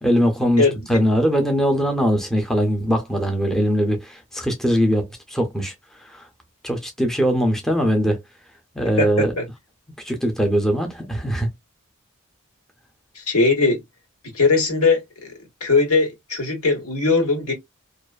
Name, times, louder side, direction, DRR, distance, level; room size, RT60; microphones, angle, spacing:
voice 1, 0.0-5.7 6.1-6.3 6.6-8.2 8.8-9.3 10.0-11.5, equal, ahead, 0.6 m, -21 dB
voice 2, 0.6-1.0 9.0-9.4 13.1-13.8 14.3-15.3 15.6-17.5, left 3 dB, 90° left, 1.4 m, -20 dB
2.5 x 2.4 x 2.3 m
head